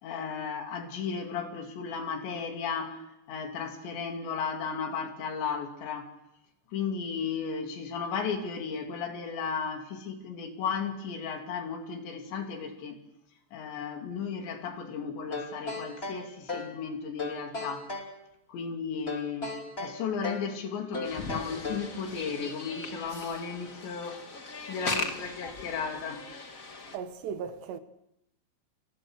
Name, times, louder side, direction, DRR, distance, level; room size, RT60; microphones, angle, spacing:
voice 1, 0.0-6.1 6.7-13.0 13.5-17.9 18.5-24.3 24.7-26.3, left 6 dB, 75° left, 5.2 m, -35 dB
sound 1, 15.3-16.8 17.2-18.1 19.1-20.5 20.9-22.0, left 3 dB, 15° left, 2.3 m, -36 dB
sound 2, 21.0-27.0, left 3 dB, 45° left, 1.0 m, -38 dB
voice 2, 26.9-27.8, right 7 dB, 75° right, 3.4 m, -36 dB
29.0 x 29.0 x 6.5 m
omnidirectional pair, 5.1 m